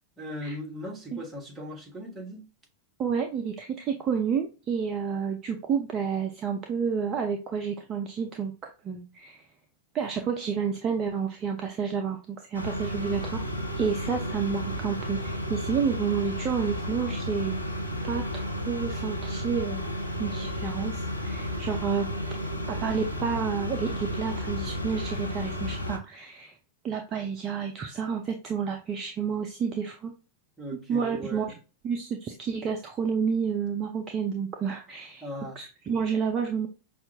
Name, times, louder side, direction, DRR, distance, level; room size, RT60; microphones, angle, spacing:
voice 1, 0.2-2.5 30.6-31.5 35.2-35.6, equal, 10° right, 1.4 m, -38 dB
voice 2, 3.0-9.4 9.9-13.4 13.8-17.6 18.1-19.8 20.2-22.1 22.7-26.5 26.8-30.1 30.9-31.5 31.8-35.2 35.6-36.7, right 6 dB, 30° right, 0.5 m, -30 dB
sound 1, 12.5-26.0, equal, 90° left, 0.7 m, -32 dB
5.5 x 2.4 x 2.7 m
figure-of-eight pair, 90°, 0 cm